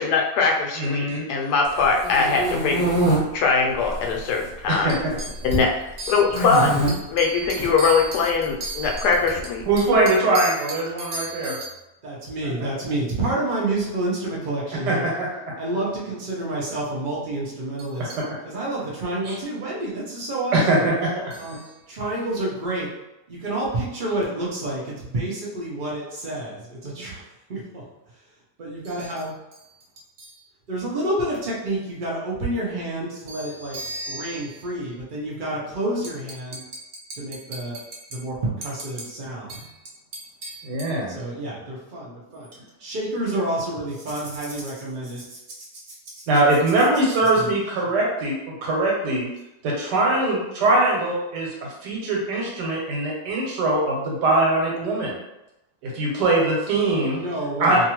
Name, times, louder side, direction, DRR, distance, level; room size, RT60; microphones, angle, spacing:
voice 1, 0.0-2.9 3.2-4.9 5.4-5.7 6.1-6.8 7.1-9.6, left 4 dB, 75° left, 1 dB, 1.1 m, -21 dB
voice 2, 0.7-1.2 4.7-5.2 9.6-11.5 14.9-15.3 18.2-18.3 19.3-19.4 20.5-21.1 40.6-41.1 46.3-49.3 49.6-55.2 55.8-57.2 57.6-57.9, right 2 dB, 90° right, -3 dB, 1.4 m, -22 dB
sound 1, 1.8-3.2 3.8-4.4 4.7-5.7 6.3-6.9 7.4-7.7 8.8-9.8, right 1 dB, 15° left, 0.7 m, -24 dB
voice 3, 4.9-5.5 6.0-6.2 6.5-8.2 8.6-9.1 10.3-11.7 12.0-15.1 15.6-18.2 18.4-20.9 21.4-21.6 21.9-22.9 23.3-27.2 27.5-27.8 28.6-29.3 30.2-30.4 30.7-36.6 37.1-37.8 38.1-39.9 40.4-40.6 41.1-42.5 42.8-45.7 46.1-46.2 47.3-47.5 47.8-47.9 57.1-57.9, right 1 dB, 45° right, -5 dB, 0.6 m, -29 dB
2.8 x 2.5 x 2.9 m, 0.90 s
omnidirectional pair, 1.8 m